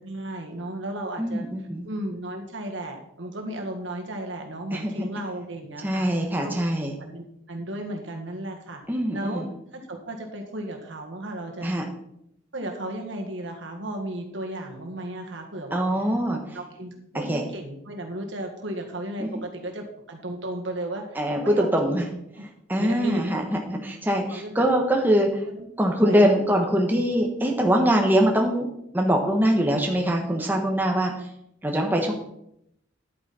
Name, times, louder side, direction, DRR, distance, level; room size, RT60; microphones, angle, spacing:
voice 1, 0.0-1.5 1.8-6.1 6.4-6.5 7.0-8.8 9.1-9.4 9.7-11.8 12.5-15.8 16.3-22.0 22.4-22.5 22.8-23.4 24.3-24.7 25.5-25.6 26.0-26.4, right 1 dB, 70° right, 2 dB, 1.9 m, -34 dB
voice 2, 1.2-1.8 4.7-5.1 5.8-6.9 8.9-9.5 11.6-11.8 15.7-16.4 17.1-17.4 19.2-19.3 21.1-22.1 22.7-25.4 25.8-28.7 28.9-31.3 31.6-32.1, equal, 10° right, 1 dB, 1.3 m, -23 dB
10.5 x 9.0 x 4.3 m, 0.75 s
head